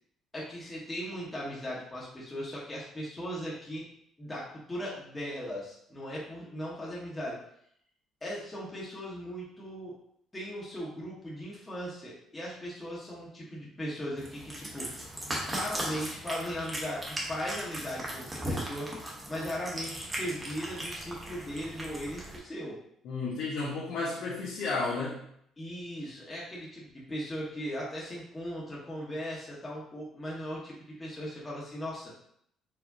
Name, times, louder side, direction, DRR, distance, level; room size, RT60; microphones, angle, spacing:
voice 1, 0.3-3.8 4.2-7.4 8.2-10.0 10.3-14.9 15.4-17.0 17.3-18.9 19.3-22.8 25.6-32.1, equal, 15° left, -6 dB, 1.1 m, -38 dB
Cat, 14.2-22.4, right 1 dB, 15° right, 1.0 m, -38 dB
voice 2, 23.0-25.2, left 3 dB, 80° left, -7 dB, 1.1 m, -32 dB
4.6 x 3.2 x 2.7 m, 0.69 s
cardioid pair, 120°, 0 cm